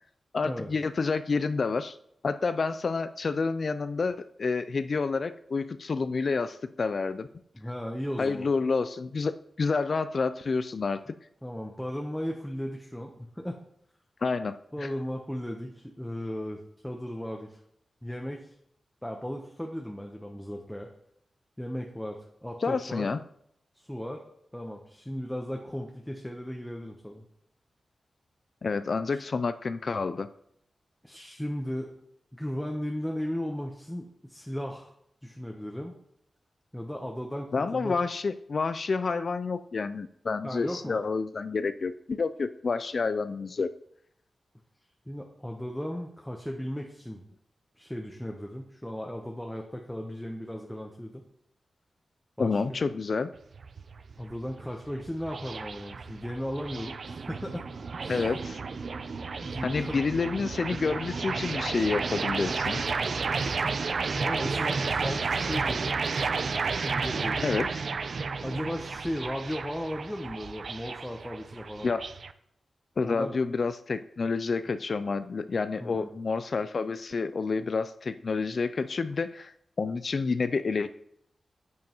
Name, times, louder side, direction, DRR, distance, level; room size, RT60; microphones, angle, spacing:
voice 1, 0.3-2.0 2.2-7.3 8.2-11.1 14.2-14.9 22.6-23.2 28.6-30.3 37.5-43.7 52.4-53.3 58.1-58.6 59.6-62.8 67.4-67.8 71.8-72.0 73.0-80.9, left 4 dB, 55° left, 12 dB, 0.3 m, -29 dB
voice 2, 7.5-8.5 11.4-13.6 14.7-17.6 18.0-18.5 19.0-20.9 21.6-23.1 23.7-24.2 24.5-27.2 29.1-29.2 31.0-31.9 32.3-34.9 35.2-36.0 36.7-38.0 40.4-41.0 45.1-47.2 47.8-51.2 52.4-52.6 54.2-57.7 58.0-58.2 59.4-59.9 63.6-63.7 64.1-65.9 66.7-67.4 68.4-71.9 73.0-73.3 75.8-76.1, equal, 5° left, 1 dB, 0.9 m, -36 dB
sound 1, 53.3-72.3, right 4 dB, 60° right, 0.5 m, -32 dB
9.3 x 7.6 x 3.0 m, 0.73 s
wide cardioid pair, 95°, 0 cm